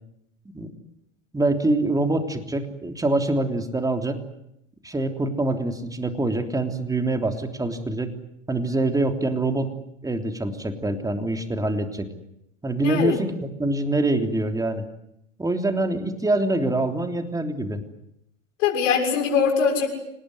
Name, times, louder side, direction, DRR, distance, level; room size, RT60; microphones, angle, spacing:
voice 1, 1.3-4.2 4.8-8.1 8.5-9.7 10.0-12.1 12.6-14.8 15.4-17.8, right 2 dB, 10° right, 6 dB, 3.4 m, -25 dB
voice 2, 12.8-13.2 18.6-19.9, left 6 dB, 70° left, 0 dB, 6.9 m, -22 dB
26.5 x 19.0 x 9.7 m, 0.79 s
hypercardioid pair, 105°, 39 cm